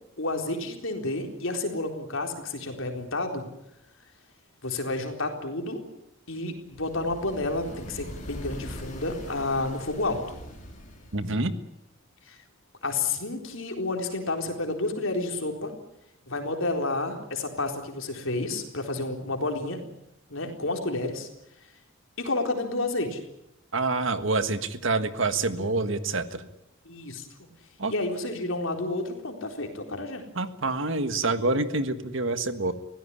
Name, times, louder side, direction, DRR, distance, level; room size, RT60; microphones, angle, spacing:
voice 1, 0.2-3.5 4.6-5.8 6.3-10.2 12.3-12.4 12.8-15.7 16.3-19.8 20.3-21.3 22.2-23.2 26.8-27.5 27.9-30.2, left 2 dB, 70° left, 4 dB, 4.0 m, -30 dB
sound 1, 6.7-11.4, equal, 35° left, 4.8 m, -41 dB
voice 2, 11.1-11.5 23.7-26.4 27.8-27.9 30.3-32.7, right 3 dB, 65° right, 10 dB, 1.6 m, -27 dB
24.0 x 17.0 x 9.8 m, 0.85 s
head